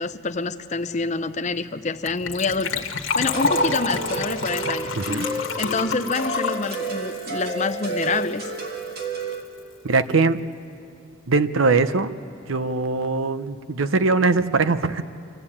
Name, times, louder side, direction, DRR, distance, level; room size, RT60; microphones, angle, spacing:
voice 1, 0.0-2.8 3.1-4.9 5.6-8.5, left 4 dB, 35° left, 11 dB, 0.6 m, -27 dB
Gurgling / Trickle dribble / Fill (with liquid), 2.1-8.3 8.6-8.7 8.8-9.0 9.3-9.4, left 4 dB, 70° left, 1.4 m, -28 dB
panflute loop, 3.2-9.4, right 3 dB, 50° right, 1.8 m, -30 dB
voice 2, 5.0-5.3 9.8-10.4 11.3-12.1 12.5-15.0, right 3 dB, 85° right, 12 dB, 0.8 m, -21 dB
25.5 x 15.0 x 8.6 m, 2.8 s
head